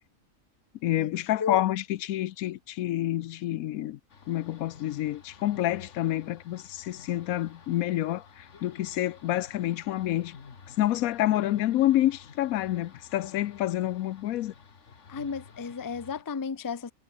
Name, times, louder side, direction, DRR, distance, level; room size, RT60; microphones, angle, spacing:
voice 1, 0.8-4.0 4.3-10.4 10.7-14.5, left 14 dB, 85° left, 1.1 m, -28 dB
sound 1, 4.1-16.2, left 5 dB, 55° left, 1.9 m, -51 dB
voice 2, 15.1-16.9, left 5 dB, 25° left, 0.4 m, -33 dB
omnidirectional pair, 1.5 m